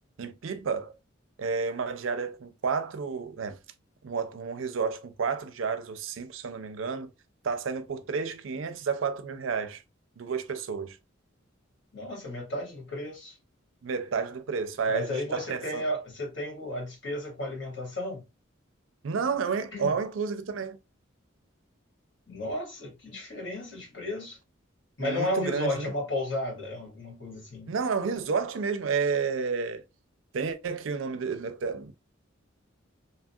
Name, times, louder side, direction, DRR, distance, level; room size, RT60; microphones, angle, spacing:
voice 1, 0.2-0.9 1.4-3.6 4.0-7.1 7.4-9.8 10.2-11.0 13.8-15.8 19.0-20.8 25.0-25.9 27.7-29.8 30.3-31.9, right 5 dB, 75° right, 0.4 m, -31 dB
voice 2, 11.9-13.3 14.9-18.2 19.7-19.9 22.3-24.4 25.0-27.7, left 1 dB, 65° left, 1.5 m, -33 dB
2.8 x 2.3 x 2.6 m
head